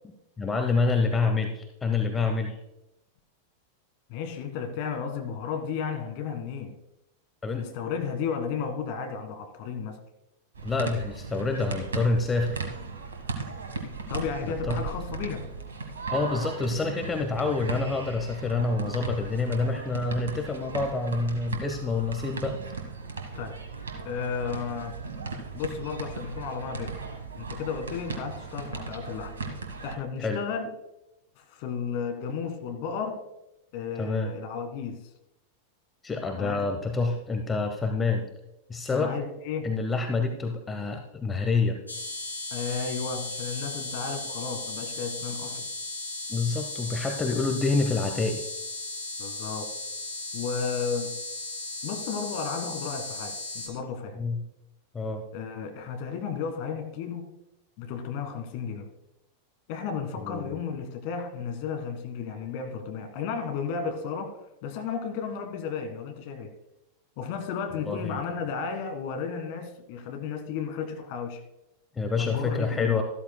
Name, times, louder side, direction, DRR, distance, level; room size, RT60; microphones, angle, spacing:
voice 1, 0.4-2.6 7.4-7.7 10.6-12.6 14.6-14.8 16.1-22.6 30.2-30.4 34.0-34.3 36.0-38.2 38.7-39.1 39.6-41.8 46.3-48.4 54.2-54.4 54.9-55.2 60.2-60.5 67.8-68.2 72.0-73.0, left 3 dB, 15° left, 5 dB, 0.9 m, -27 dB
voice 2, 4.1-6.8 7.5-10.0 14.1-15.4 23.3-23.5 24.0-24.9 25.5-26.9 27.3-29.4 29.8-30.7 31.4-33.2 33.7-35.0 36.4-36.6 38.9-39.7 42.5-45.7 49.2-49.7 50.3-51.1 51.8-54.1 55.3-57.3 57.8-58.9 59.7-64.4 64.6-66.5 67.2-71.4 72.2-73.0, left 6 dB, 45° left, 6 dB, 1.7 m, -33 dB
sound 1, 10.5-29.9, right 4 dB, 70° right, 1.4 m, -37 dB
sound 2, 41.9-53.7, left 2 dB, 80° left, 2.3 m, -36 dB
13.5 x 13.0 x 2.2 m, 0.87 s
figure-of-eight pair, 90°, 0 cm